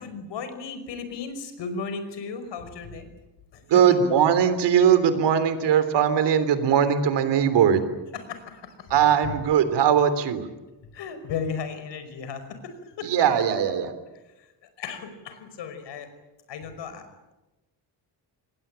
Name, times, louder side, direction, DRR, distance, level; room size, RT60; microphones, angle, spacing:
voice 1, 0.0-3.1 3.5-3.6 8.1-8.9 9.2-9.3 10.9-13.1 14.4-14.5 14.8-16.1 16.5-17.1, left 5 dB, 80° left, 9 dB, 5.4 m, -35 dB
voice 2, 3.7-7.8 8.9-10.5 13.0-13.9, right 8 dB, 75° right, 12 dB, 3.5 m, -20 dB
27.0 x 21.0 x 9.0 m, 1.0 s
cardioid pair, 170°, 42 cm